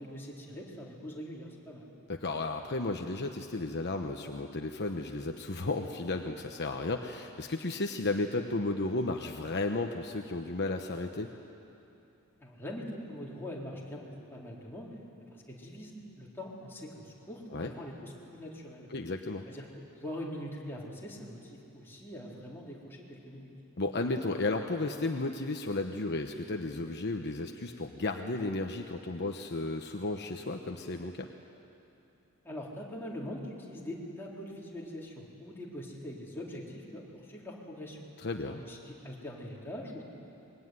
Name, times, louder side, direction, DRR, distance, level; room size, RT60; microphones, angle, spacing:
voice 1, 0.0-1.9 12.4-14.9 15.5-18.9 19.5-23.5 32.4-38.1 38.6-40.0, left 1 dB, 10° left, -4 dB, 4.2 m, -43 dB
voice 2, 2.1-11.3 17.5-17.7 18.9-19.4 23.8-31.3 38.2-38.6, left 2 dB, 50° left, 4 dB, 1.0 m, -33 dB
24.5 x 22.0 x 9.7 m, 2.8 s
head